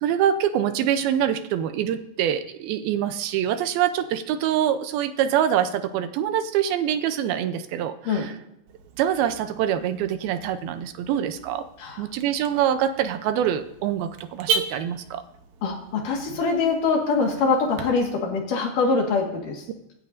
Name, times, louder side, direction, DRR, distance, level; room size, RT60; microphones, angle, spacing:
voice 1, 0.0-8.4 9.0-11.7 12.0-15.2, right 10 dB, 85° right, 9 dB, 2.5 m, -25 dB
Car / Alarm, 8.7-17.8, right 5 dB, 70° right, 1.9 m, -36 dB
voice 2, 15.6-19.6, left 4 dB, 60° left, 1 dB, 3.2 m, -23 dB
25.5 x 11.0 x 2.7 m, 0.84 s
omnidirectional pair, 4.5 m